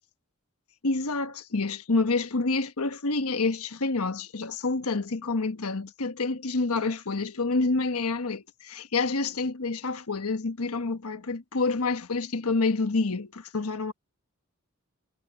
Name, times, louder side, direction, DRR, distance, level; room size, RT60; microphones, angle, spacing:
voice 1, 0.8-13.9, left 3 dB, 80° left, 1.2 m, -28 dB
head